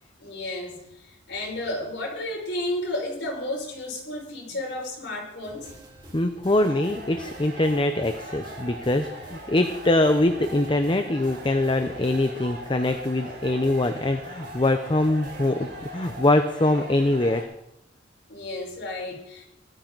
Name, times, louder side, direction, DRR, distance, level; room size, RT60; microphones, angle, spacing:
voice 1, 0.2-0.8 1.0-5.7 18.3-19.4, left 1 dB, 65° left, -2 dB, 5.6 m, -32 dB
sound 1, 5.4-16.4, right 1 dB, 25° right, 3.9 m, -48 dB
voice 2, 6.1-17.5, left 1 dB, 25° left, 8 dB, 0.7 m, -23 dB
sound 2, 6.5-17.4, right 1 dB, 65° right, 6.2 m, -41 dB
18.0 x 13.5 x 4.1 m, 0.83 s
head